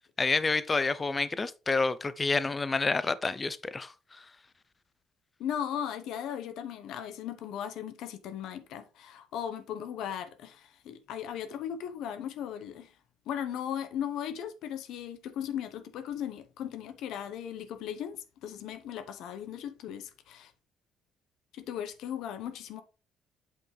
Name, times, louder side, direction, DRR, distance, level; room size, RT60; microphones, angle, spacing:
voice 1, 0.2-4.2, left 3 dB, 20° left, 0.5 m, -29 dB
voice 2, 5.4-12.9 13.3-20.5 21.5-22.8, left 9 dB, 70° left, 0.9 m, -37 dB
7.8 x 5.7 x 3.2 m
cardioid pair, 130°, 0 cm